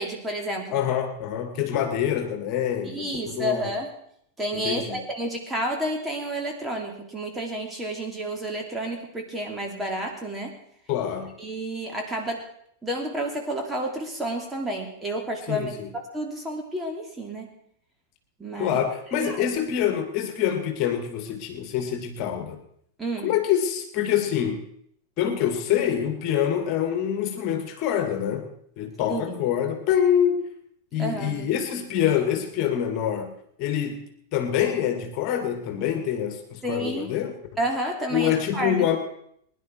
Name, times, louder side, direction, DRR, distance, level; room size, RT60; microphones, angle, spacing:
voice 1, 0.0-0.8 2.8-3.9 4.4-10.6 11.4-12.4 12.8-15.7 16.1-17.5 18.4-18.8 19.2-19.4 23.0-23.3 29.1-29.4 31.0-31.4 36.6-37.1 37.6-38.9, right 1 dB, 10° right, 1 dB, 3.0 m, -30 dB
voice 2, 0.7-3.7 4.5-5.0 10.9-11.4 15.5-15.9 18.6-22.6 23.2-24.6 25.2-28.5 28.8-30.4 30.9-33.3 33.6-34.0 34.3-37.3 38.1-39.0, left 9 dB, 40° left, 6 dB, 2.3 m, -25 dB
21.5 x 11.0 x 4.7 m, 0.70 s
figure-of-eight pair, 90°, 0 cm